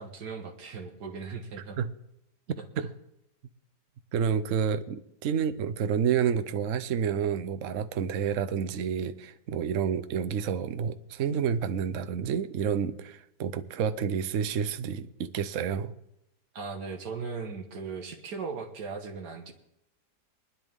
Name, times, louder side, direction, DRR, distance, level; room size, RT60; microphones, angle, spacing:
voice 1, 0.0-1.8 2.6-2.9 16.5-19.5, right 5 dB, 80° right, 2.0 m, -38 dB
voice 2, 4.1-15.9, right 7 dB, 60° right, 1.0 m, -29 dB
24.5 x 10.0 x 3.6 m
omnidirectional pair, 1.8 m